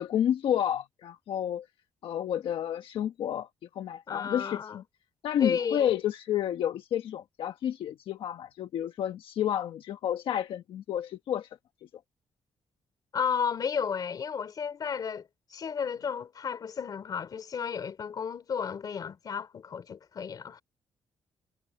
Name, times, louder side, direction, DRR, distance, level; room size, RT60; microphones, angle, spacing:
voice 1, 0.0-1.7 2.0-3.5 3.7-4.8 5.2-11.5, left 10 dB, 85° left, 1.2 m, -30 dB
voice 2, 4.1-4.8 5.4-5.9 13.1-20.6, left 7 dB, 45° left, 3.2 m, -33 dB
cardioid pair, 140°, 9 cm